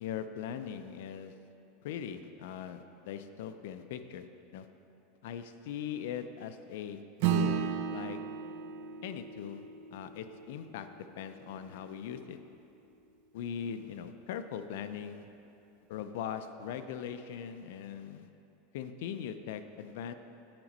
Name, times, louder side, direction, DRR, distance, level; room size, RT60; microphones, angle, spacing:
voice 1, 0.0-1.4 1.8-4.3 4.5-4.7 5.2-7.0 7.3-8.2 9.0-9.6 9.9-10.9 11.2-12.4 13.3-15.3 15.9-18.3 18.7-20.1, left 8 dB, 65° left, 10 dB, 0.4 m, -40 dB
Acoustic guitar / Strum, 7.2-12.0, right 8 dB, 55° right, 0.3 m, -35 dB
8.8 x 4.9 x 5.3 m, 2.8 s
supercardioid pair, 175°, 0 cm